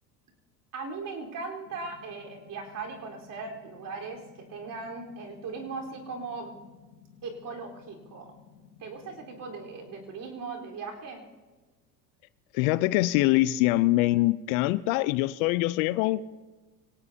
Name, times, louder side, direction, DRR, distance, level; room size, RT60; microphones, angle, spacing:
voice 1, 0.7-4.2 4.5-6.5 7.2-8.3 8.8-11.2, right 4 dB, 40° right, 1 dB, 4.2 m, -38 dB
sound 1, 1.6-10.2, left 7 dB, 80° left, 3.4 m, -55 dB
voice 2, 12.5-16.3, left 18 dB, 60° left, 17 dB, 0.6 m, -24 dB
24.0 x 17.5 x 2.8 m, 1.2 s
hypercardioid pair, 85°, 48 cm